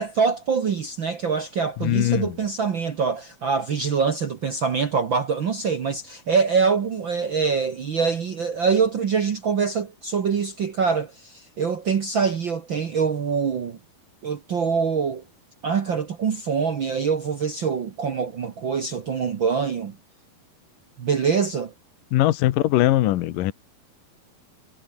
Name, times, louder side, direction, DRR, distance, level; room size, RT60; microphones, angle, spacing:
voice 1, 0.0-13.8 14.2-15.2 15.6-19.9 21.0-21.7, right 5 dB, 60° right, 1.3 m, -24 dB
voice 2, 1.8-2.3 22.1-23.5, left 15 dB, 70° left, 2.5 m, -20 dB
omnidirectional pair, 4.2 m